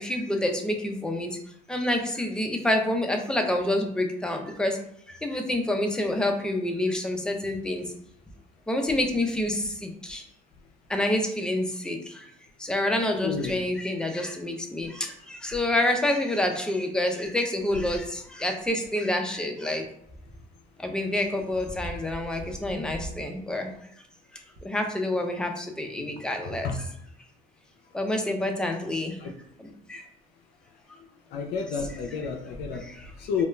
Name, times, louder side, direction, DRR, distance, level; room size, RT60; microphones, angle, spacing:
voice 1, 0.0-1.4 1.7-4.8 5.1-7.9 8.7-10.2 10.9-12.3 12.6-19.8 20.8-23.7 24.6-26.7 27.9-29.2 29.6-30.1 32.8-33.1, left 1 dB, 5° left, 4 dB, 0.4 m, -28 dB
voice 2, 13.2-13.6 26.0-26.1 26.6-26.8 29.2-29.3 31.3-32.8 33.2-33.5, left 5 dB, 80° left, 2 dB, 0.4 m, -30 dB
sound 1, 18.6-18.9 20.9-23.2 23.7-23.8 24.5-24.6, right 1 dB, 60° right, 0.7 m, -41 dB
2.3 x 2.1 x 3.1 m, 0.71 s
cardioid pair, 110°, 17 cm